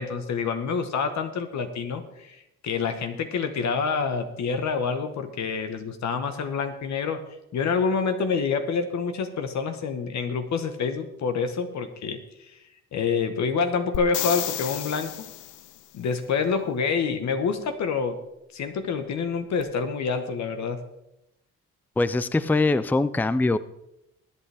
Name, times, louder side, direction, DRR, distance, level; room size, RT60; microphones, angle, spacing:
voice 1, 0.0-7.2 7.5-12.6 12.9-15.1 15.9-18.2 18.5-20.8, left 5 dB, 65° left, 7 dB, 1.3 m, -27 dB
sound 1, 13.9-15.8 19.6-19.7, left 13 dB, 85° left, 0.7 m, -32 dB
voice 2, 22.0-23.6, left 2 dB, 5° left, 15 dB, 0.5 m, -22 dB
20.5 x 8.5 x 3.5 m, 0.85 s
cardioid pair, 90°, 30 cm